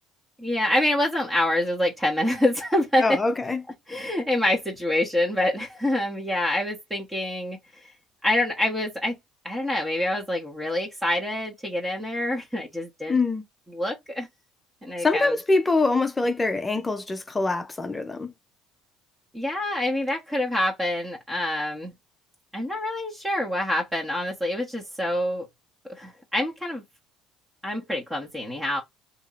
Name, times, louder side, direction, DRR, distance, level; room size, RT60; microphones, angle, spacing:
voice 1, 0.4-3.2 3.9-7.6 8.2-9.2 9.4-13.2 13.7-14.3 14.8-15.3 19.3-21.9 22.5-25.5 25.9-26.8 27.6-28.8, left 1 dB, 10° right, 1.2 m, -26 dB
voice 2, 3.0-3.6 13.1-13.4 15.0-18.3, left 3 dB, 15° left, 0.6 m, -24 dB
2.9 x 2.7 x 4.0 m
cardioid pair, 110°, 0 cm